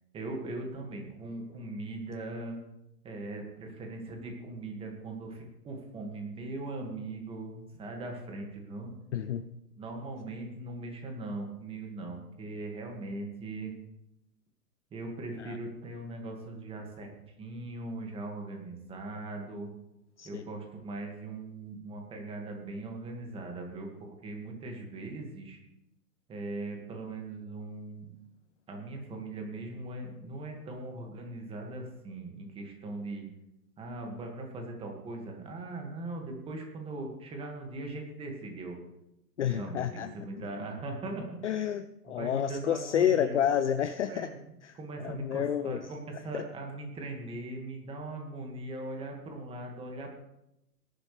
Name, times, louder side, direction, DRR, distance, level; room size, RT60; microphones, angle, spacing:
voice 1, 0.1-2.6 3.0-9.0 9.8-13.7 14.9-17.1 17.4-19.7 20.2-25.6 26.3-28.1 28.7-33.3 33.8-38.8 39.4-41.4 42.0-43.4 44.1-50.1, right 2 dB, 10° right, 2 dB, 2.1 m, -40 dB
voice 2, 9.1-9.4 15.4-15.6 20.2-20.4 39.4-40.1 41.4-44.3 44.6-44.7 45.0-45.8 46.3-46.4, left 9 dB, 50° left, 11 dB, 0.7 m, -29 dB
18.5 x 11.0 x 3.4 m, 0.87 s
hypercardioid pair, 140°, 48 cm